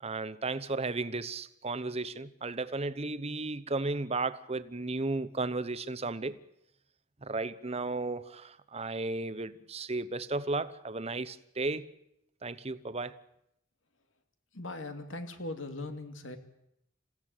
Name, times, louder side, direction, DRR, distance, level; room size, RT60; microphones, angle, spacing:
voice 1, 0.0-6.4 7.2-11.9 12.4-13.2, right 3 dB, 30° right, 0.9 m, -34 dB
voice 2, 14.5-16.4, left 2 dB, 80° left, 2.5 m, -39 dB
27.5 x 16.0 x 9.1 m
head